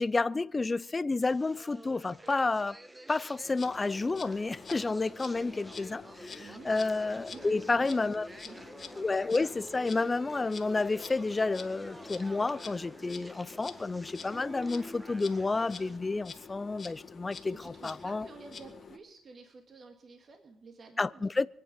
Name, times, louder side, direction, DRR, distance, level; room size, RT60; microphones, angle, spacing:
voice 1, 0.0-2.8 3.1-8.3 9.0-18.3 21.0-21.5, left 3 dB, 25° left, 0.5 m, -30 dB
sound 1, 1.2-16.0, right 1 dB, 15° right, 1.2 m, -49 dB
Insect, 3.4-19.0, left 5 dB, 45° left, 1.8 m, -48 dB
voice 2, 6.4-6.7 7.3-9.0 17.6-21.3, right 4 dB, 45° right, 1.9 m, -51 dB
24.5 x 9.0 x 5.4 m
cardioid pair, 90°, 0 cm